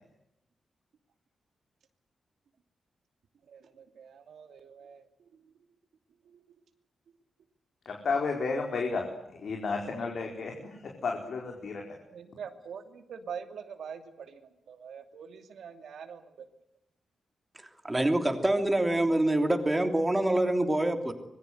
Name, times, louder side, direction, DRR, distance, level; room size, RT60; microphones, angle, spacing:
voice 1, 3.5-5.0 5.3-5.4 6.3-6.4 12.1-16.5, right 7 dB, 75° right, 7 dB, 2.6 m, -44 dB
voice 2, 7.9-9.0 9.4-10.8 11.0-11.8, left 4 dB, 55° left, 1 dB, 4.7 m, -32 dB
voice 3, 17.8-21.1, right 1 dB, 10° right, 6 dB, 3.1 m, -25 dB
25.5 x 22.5 x 8.0 m, 0.82 s
wide cardioid pair, 175°, 0 cm